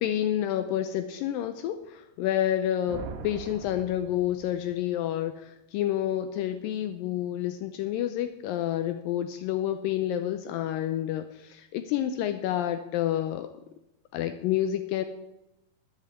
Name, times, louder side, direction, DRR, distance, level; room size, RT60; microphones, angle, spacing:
voice 1, 0.0-13.5 14.1-15.0, left 11 dB, 80° left, 9 dB, 2.2 m, -29 dB
sound 1, 2.9-4.8, right 6 dB, 85° right, 3.0 m, -42 dB
10.5 x 7.8 x 8.1 m, 0.90 s
omnidirectional pair, 4.3 m